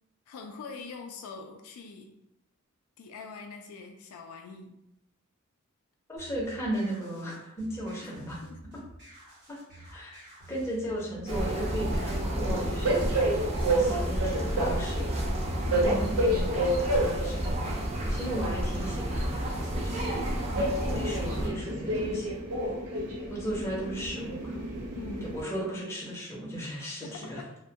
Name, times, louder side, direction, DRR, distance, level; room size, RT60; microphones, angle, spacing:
voice 1, 0.3-2.1 3.0-4.8 8.0-8.6 15.6-16.0 25.0-25.4 27.0-27.6, left 4 dB, 75° left, 4 dB, 0.3 m, -43 dB
voice 2, 6.1-8.4 9.5-9.6 9.9-13.1 13.6-15.3 15.8-17.7 18.1-20.2 20.9-22.3 23.3-24.5 25.2-27.4, right 1 dB, 10° left, -5 dB, 0.6 m, -36 dB
sound 1, 6.2-15.2, right 1 dB, 50° right, 0.8 m, -51 dB
sound 2, 11.3-21.5, equal, 30° right, 0.3 m, -31 dB
Train, 11.4-25.4, right 1 dB, 80° right, 0.5 m, -31 dB
2.1 x 2.1 x 2.7 m, 0.84 s
head